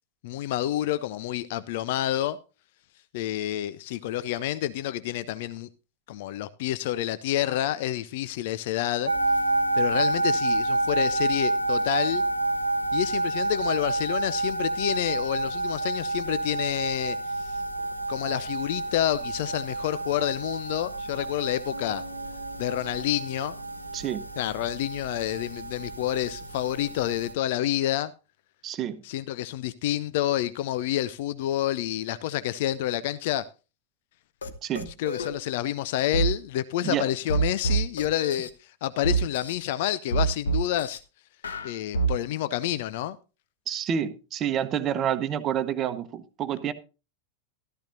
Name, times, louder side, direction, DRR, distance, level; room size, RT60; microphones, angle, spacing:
voice 1, 0.2-2.4 3.1-5.7 6.1-9.1 9.7-12.2 12.9-17.6 18.1-22.0 22.6-23.6 24.4-28.1 29.0-33.5 34.9-41.0 41.6-43.2, left 13 dB, 50° left, 0.5 m, -28 dB
sound 1, 9.1-27.3, right 2 dB, 75° right, 1.2 m, -29 dB
Bass guitar, 21.7-25.3, equal, 85° left, 6.6 m, -48 dB
voice 2, 23.9-24.2 28.6-29.0 34.6-34.9 36.8-37.0 43.7-46.7, right 9 dB, 30° right, 0.9 m, -28 dB
sound 2, 34.4-34.5 34.7-35.3 36.1-36.3 37.3-38.5 39.0-39.5 40.1-41.0 41.4-42.1, right 4 dB, 70° left, 1.2 m, -26 dB
13.5 x 13.5 x 2.6 m
figure-of-eight pair, 90°, 0 cm